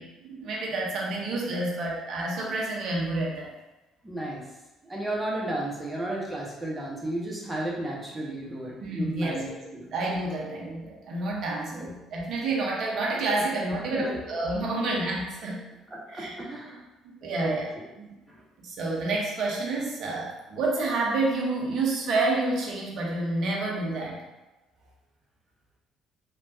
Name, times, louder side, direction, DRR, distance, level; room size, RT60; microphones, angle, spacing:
voice 1, 0.0-3.5 8.8-9.6 9.9-15.6 16.1-16.4 17.2-17.7 18.0-18.1 18.6-24.2, right 2 dB, 50° right, -2 dB, 0.7 m, -29 dB
voice 2, 4.0-4.4 4.9-9.9 11.7-11.9 13.9-14.2 15.9-16.8 17.4-17.5, right 1 dB, 15° right, -4 dB, 0.9 m, -33 dB
3.2 x 2.2 x 2.6 m, 1.0 s
figure-of-eight pair, 50°, 0 cm